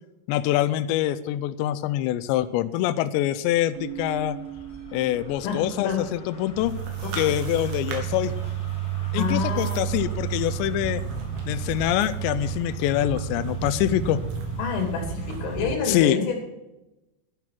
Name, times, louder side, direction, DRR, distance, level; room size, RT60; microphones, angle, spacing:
voice 1, 0.3-4.4 4.9-6.7 7.1-8.3 9.1-11.0 11.5-14.2 15.9-16.2, left 13 dB, 80° left, 13 dB, 2.7 m, -25 dB
sound 1, 3.7-15.8, left 1 dB, 35° left, 1.7 m, -47 dB
Keyboard (musical), 3.8-6.4, right 13 dB, 90° right, 3.2 m, -40 dB
voice 2, 5.4-6.0 7.0-7.3 9.1-9.9 14.6-16.4, left 6 dB, 60° left, 2 dB, 4.5 m, -28 dB
sound 2, 6.6-15.7, right 8 dB, 70° right, 3.8 m, -31 dB
11.0 x 11.0 x 5.8 m, 0.97 s
omnidirectional pair, 5.6 m